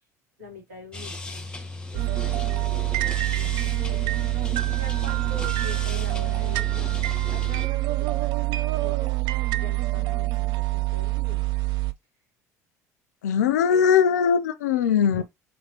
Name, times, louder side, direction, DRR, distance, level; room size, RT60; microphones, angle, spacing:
voice 1, 0.4-1.4 1.9-6.9 7.3-9.1 9.5-11.5 13.7-13.8 14.7-15.2, left 2 dB, 80° right, 2.5 m, -44 dB
sound 1, 0.9-7.7, left 2 dB, 10° left, 1.0 m, -36 dB
sound 2, 1.9-11.9, right 19 dB, 60° right, 0.4 m, -26 dB
voice 2, 13.2-15.2, left 7 dB, 80° left, 0.4 m, -20 dB
3.8 x 3.5 x 2.9 m
hypercardioid pair, 65°, 9 cm